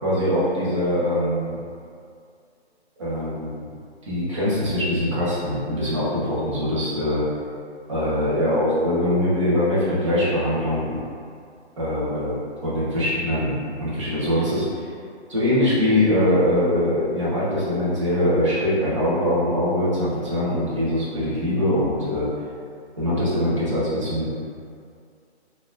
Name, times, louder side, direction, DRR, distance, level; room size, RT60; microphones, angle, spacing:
voice 1, 0.0-1.5 3.0-3.6 4.1-7.2 7.9-10.9 11.8-12.3 12.6-14.9 15.3-22.2 23.0-24.3, left 1 dB, 30° right, -10 dB, 0.8 m, -22 dB
4.0 x 2.5 x 2.5 m, 2.3 s
hypercardioid pair, 170°, 34 cm